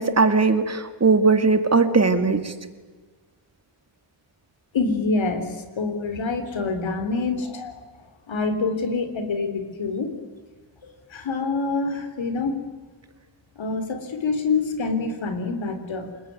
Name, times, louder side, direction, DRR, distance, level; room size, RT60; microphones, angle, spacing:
voice 1, 0.0-2.5, right 4 dB, 35° right, 9 dB, 2.3 m, -19 dB
voice 2, 4.7-7.8 8.3-10.2 10.8-12.6 13.6-16.1, left 3 dB, 80° left, 9 dB, 3.7 m, -26 dB
28.0 x 19.5 x 9.6 m, 1.4 s
wide cardioid pair, 90°, 45 cm